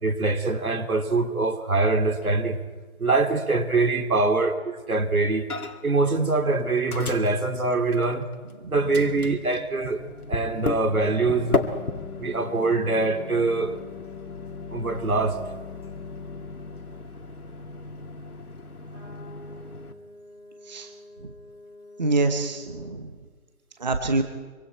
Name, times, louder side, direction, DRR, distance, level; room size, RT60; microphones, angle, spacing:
voice 1, 0.0-2.6 3.0-5.5 5.8-8.3 8.7-10.0 10.3-11.6 12.2-13.7 14.7-15.4, right 3 dB, 75° right, 6 dB, 2.7 m, -23 dB
Microwave oven, 5.5-6.0 6.2-8.5 8.9-19.9, left 3 dB, 90° left, 2.3 m, -35 dB
sound 1, 10.9-17.3 18.9-22.9, left 8 dB, 10° right, 6.5 m, -44 dB
voice 2, 22.0-23.1 23.8-24.2, right 2 dB, 30° right, 6 dB, 1.0 m, -25 dB
25.5 x 24.5 x 4.5 m, 1.5 s
figure-of-eight pair, 170°, 43 cm